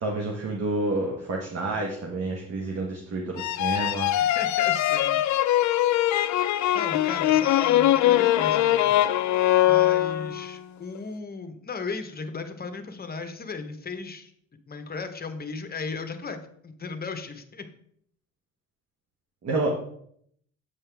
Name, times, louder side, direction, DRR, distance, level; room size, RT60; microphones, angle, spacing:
voice 1, 0.0-4.1 19.4-19.7, right 2 dB, 55° right, 0 dB, 1.2 m, -29 dB
sound 1, 3.4-10.5, left 13 dB, 70° left, 0.4 m, -22 dB
voice 2, 4.1-5.2 6.7-9.0 9.6-14.3 14.7-16.4 16.6-17.7, left 4 dB, 30° left, 7 dB, 1.0 m, -36 dB
8.3 x 5.5 x 3.4 m, 0.67 s
cardioid pair, 90°, 30 cm